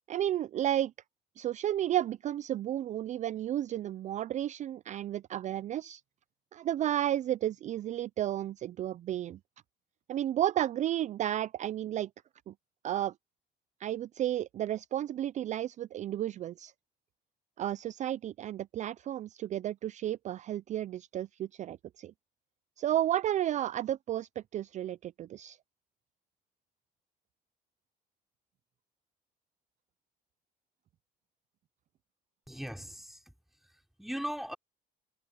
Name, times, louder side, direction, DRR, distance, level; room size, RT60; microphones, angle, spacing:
voice 1, 0.1-0.9 1.4-6.0 6.5-9.4 10.1-12.1 12.5-12.6 12.8-13.1 13.8-16.7 17.6-22.1 22.8-25.6, right 12 dB, 45° right, 0.4 m, -32 dB
voice 2, 32.5-33.3 33.7-34.6, equal, ahead, 4.3 m, -39 dB
cardioid pair, 110°, 17 cm